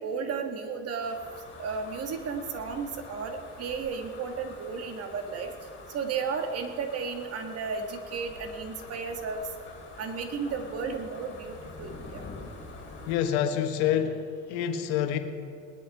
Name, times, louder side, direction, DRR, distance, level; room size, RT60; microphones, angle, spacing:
voice 1, 0.0-1.2 1.6-5.5 5.9-9.4 10.0-12.2, right 5 dB, 45° right, 5 dB, 1.6 m, -33 dB
sound 1, 1.0-13.2, left 3 dB, 35° left, 4.1 m, -46 dB
voice 2, 13.1-15.2, left 9 dB, 85° left, 7 dB, 1.3 m, -27 dB
19.5 x 10.5 x 4.7 m, 2.4 s
supercardioid pair, 115°, 33 cm